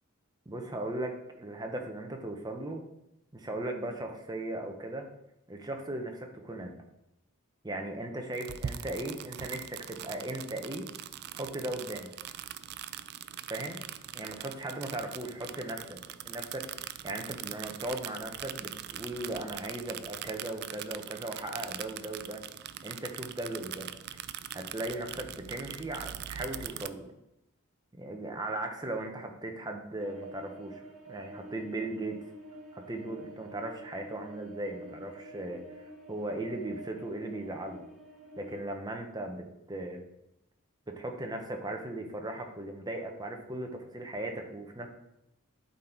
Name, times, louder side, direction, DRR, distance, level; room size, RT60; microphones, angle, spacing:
voice 1, 0.5-2.8 3.3-5.1 5.5-6.7 7.6-10.9 11.4-12.1 13.5-13.8 14.1-16.0 16.2-22.4 22.8-24.0 24.5-27.1 27.9-32.2 32.7-37.8 38.4-40.0 40.9-44.9, right 1 dB, 20° right, 3 dB, 0.8 m, -38 dB
sound 1, 8.3-26.9, right 10 dB, 45° right, 0.3 m, -42 dB
sound 2, 30.0-38.6, right 1 dB, ahead, 1.5 m, -48 dB
11.5 x 4.1 x 4.5 m, 0.88 s
head